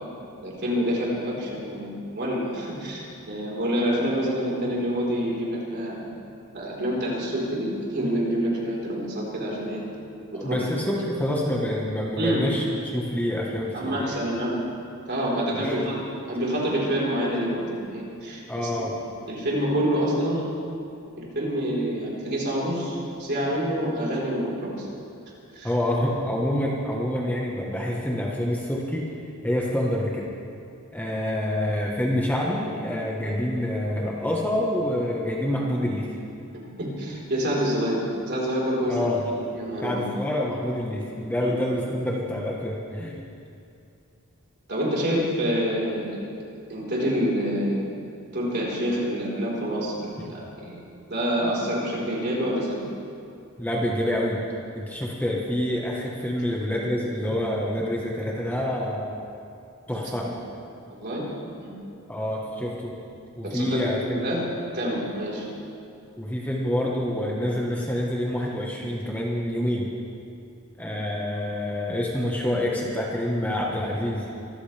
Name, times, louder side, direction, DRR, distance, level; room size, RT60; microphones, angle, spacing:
voice 1, 0.4-6.0 6.5-9.8 10.3-10.6 12.2-12.5 13.7-14.6 15.1-16.0 16.3-19.0 19.3-20.5 21.2-24.9 25.5-25.7 36.5-39.1 39.5-40.0 41.4-41.6 44.7-46.2 46.7-47.9 48.3-50.8 51.1-52.8 60.2-60.3 60.9-61.3 61.6-61.7 63.4-64.5 64.7-65.4, equal, 50° right, -5 dB, 4.3 m, -27 dB
voice 2, 10.3-12.6 12.9-14.2 15.5-15.9 18.5-18.9 25.6-29.1 29.4-30.3 30.9-36.1 38.9-39.2 39.8-43.2 50.2-50.3 53.6-54.4 54.7-59.2 59.9-60.3 62.1-62.9 63.4-64.2 66.2-69.9 70.8-74.3, left 1 dB, 10° left, -3 dB, 1.3 m, -27 dB
25.0 x 14.5 x 3.5 m, 2.6 s
head